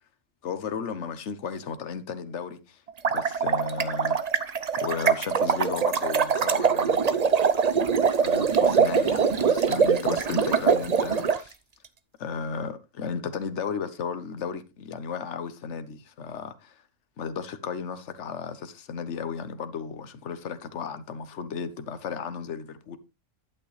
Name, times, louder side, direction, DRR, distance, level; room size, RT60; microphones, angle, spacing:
voice 1, 0.4-2.8 3.1-4.2 4.8-7.4 7.9-11.5 12.2-16.8 17.2-23.0, left 6 dB, 65° left, 1.3 m, -34 dB
sound 1, 2.9-11.4, right 6 dB, 40° right, 0.6 m, -23 dB
11.0 x 9.0 x 3.2 m
omnidirectional pair, 1.4 m